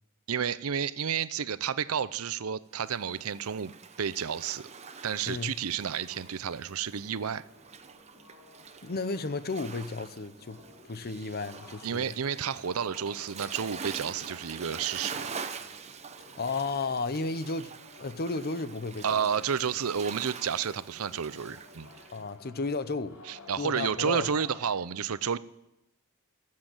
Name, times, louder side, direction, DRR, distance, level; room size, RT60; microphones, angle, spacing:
voice 1, 0.3-3.7 4.0-4.7 5.0-7.4 11.8-15.4 19.0-21.9 23.3-25.4, right 7 dB, 75° right, 16 dB, 0.6 m, -31 dB
Waves surf, 2.8-22.2, right 5 dB, 30° right, 0.8 m, -45 dB
sound 1, 5.9-24.9, left 2 dB, 75° left, 3.0 m, -54 dB
voice 2, 8.8-10.6 10.9-12.1 16.4-17.7 18.0-19.3 22.1-23.2 23.6-24.3, left 3 dB, 45° left, 13 dB, 0.8 m, -33 dB
15.0 x 7.6 x 9.0 m, 0.87 s
head